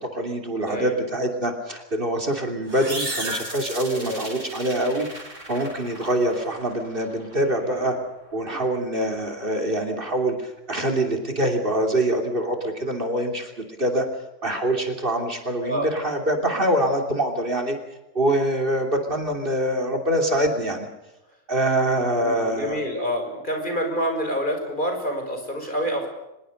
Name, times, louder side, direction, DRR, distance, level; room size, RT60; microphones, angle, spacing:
voice 1, 0.0-5.1 5.5-8.0 8.3-14.0 14.4-17.8 18.1-20.9 21.5-22.8, right 1 dB, 45° right, 4 dB, 3.3 m, -24 dB
voice 2, 0.7-1.0 3.9-4.3 7.6-7.9 15.6-15.9 22.2-26.1, equal, 40° left, 3 dB, 5.8 m, -28 dB
sound 1, 2.6-4.5, right 1 dB, 65° right, 5.0 m, -33 dB
sound 2, 2.9-8.9, right 1 dB, 85° right, 6.0 m, -40 dB
25.0 x 21.5 x 6.6 m, 0.94 s
omnidirectional pair, 1.3 m